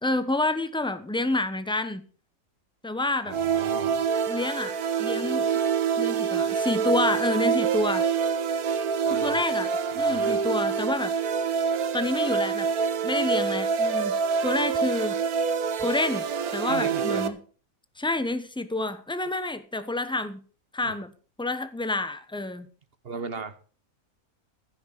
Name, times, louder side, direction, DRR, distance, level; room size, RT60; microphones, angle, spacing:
voice 1, 0.0-2.0 2.8-3.3 4.3-5.5 6.0-8.1 9.1-9.7 9.9-11.1 11.9-12.7 13.0-15.2 15.8-17.4 18.0-20.4 20.7-21.1 21.4-22.7, left 2 dB, 5° left, 11 dB, 0.7 m, -28 dB
voice 2, 3.2-4.0 9.0-9.4 10.0-10.4 16.7-17.4 20.8-21.0 23.0-23.5, right 5 dB, 45° right, 12 dB, 1.1 m, -36 dB
sound 1, 3.3-17.3, right 6 dB, 80° right, 1.5 m, -26 dB
15.0 x 6.2 x 6.8 m, 0.40 s
omnidirectional pair, 1.5 m